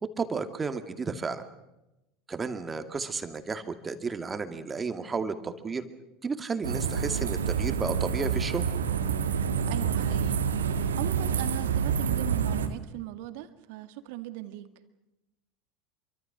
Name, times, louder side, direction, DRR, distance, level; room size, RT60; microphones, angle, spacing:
voice 1, 0.0-1.4 2.3-5.8 6.2-8.6, right 4 dB, 20° right, 8 dB, 2.4 m, -32 dB
sound 1, 6.6-12.7, right 7 dB, 75° right, 1.9 m, -28 dB
voice 2, 9.7-14.7, right 15 dB, 60° right, 10 dB, 2.0 m, -39 dB
27.5 x 24.5 x 6.2 m, 0.96 s
figure-of-eight pair, 75°, 0 cm